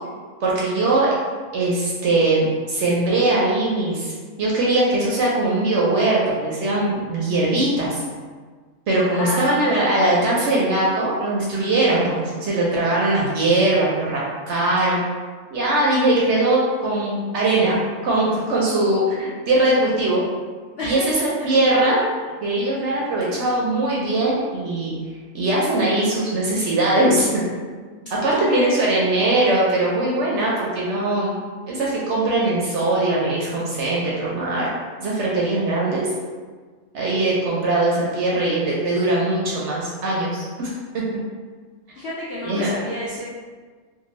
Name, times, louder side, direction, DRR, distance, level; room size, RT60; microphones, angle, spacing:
voice 1, 0.4-1.1 1.5-8.0 8.9-15.0 15.5-17.8 18.0-20.2 20.8-22.1 22.4-24.9 25.3-27.4 28.2-31.4 31.7-34.7 35.0-36.1 36.9-41.0 42.4-42.7, right 2 dB, 65° right, -5 dB, 0.7 m, -21 dB
voice 2, 9.1-9.7 20.7-21.5 28.2-29.2 41.9-43.3, left 1 dB, 70° left, -7 dB, 0.5 m, -30 dB
2.6 x 2.5 x 3.0 m, 1.5 s
omnidirectional pair, 1.5 m